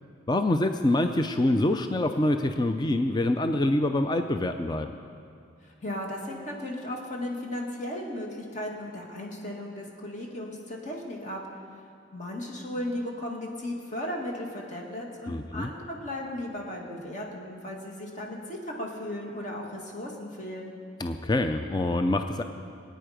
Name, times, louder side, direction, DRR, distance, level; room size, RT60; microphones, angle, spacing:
voice 1, 0.3-4.9 15.3-15.7 21.0-22.4, left 1 dB, 20° left, 7 dB, 0.4 m, -25 dB
voice 2, 5.6-11.4 12.1-20.8, left 1 dB, 40° left, -1 dB, 1.9 m, -36 dB
22.5 x 9.2 x 5.1 m, 2.4 s
head